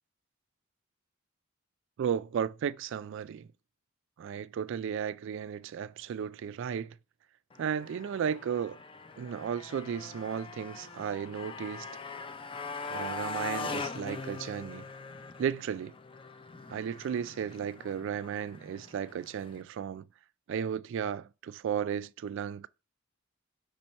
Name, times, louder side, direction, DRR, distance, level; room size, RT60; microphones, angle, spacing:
voice 1, 2.0-3.5 4.2-7.0 7.6-8.8 9.2-11.9 12.9-14.8 15.4-15.9 16.7-20.0 20.5-22.7, right 8 dB, 65° right, 0.3 m, -34 dB
Motorcycle, 7.5-19.6, left 4 dB, 25° left, 0.5 m, -42 dB
5.4 x 4.4 x 4.1 m
head